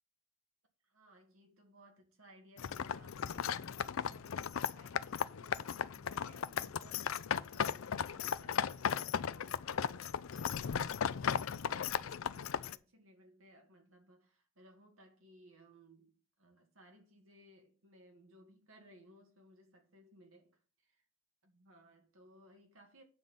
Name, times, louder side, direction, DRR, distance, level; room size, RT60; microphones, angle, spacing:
voice 1, 0.8-10.0 10.4-21.0 21.4-23.0, equal, 90° right, 2.1 m, -62 dB
sound 1, 2.6-12.8, left 7 dB, 80° left, 0.4 m, -36 dB
9.2 x 4.0 x 7.0 m
head